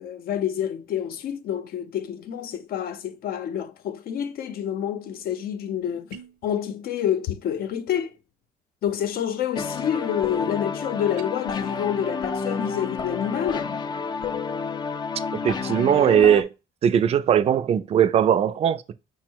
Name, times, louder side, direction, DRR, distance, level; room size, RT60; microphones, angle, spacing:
voice 1, 0.0-8.1 8.8-13.8, left 9 dB, 65° left, 0.7 m, -28 dB
sound 1, 6.1-6.5 11.1-11.3, right 9 dB, 80° right, 0.7 m, -45 dB
sound 2, 9.6-16.4, left 5 dB, 25° left, 0.4 m, -30 dB
voice 2, 15.4-16.5 16.8-18.9, right 9 dB, 35° right, 0.4 m, -19 dB
5.4 x 2.1 x 4.5 m
cardioid pair, 110°, 17 cm